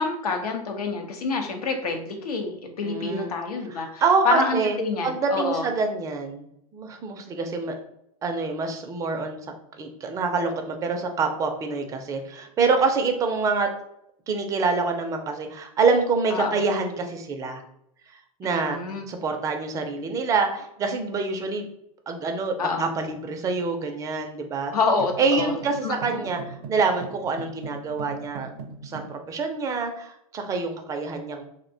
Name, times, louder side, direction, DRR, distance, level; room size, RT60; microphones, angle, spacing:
voice 1, 0.0-5.7 16.3-16.6 18.4-19.2 22.6-22.9 24.7-25.5 25.8-26.4, left 4 dB, 85° left, 4 dB, 0.6 m, -27 dB
voice 2, 2.8-3.3 3.8-4.8 5.0-6.5 6.7-7.7 8.2-9.4 9.8-13.7 14.3-17.6 18.4-18.8 19.1-21.7 22.1-24.7 25.2-28.5 28.8-31.4, right 4 dB, 15° right, 5 dB, 0.3 m, -26 dB
sound 1, 25.0-29.2, right 4 dB, 75° right, 0.6 m, -40 dB
2.5 x 2.1 x 2.6 m, 0.76 s
hypercardioid pair, 125°, 19 cm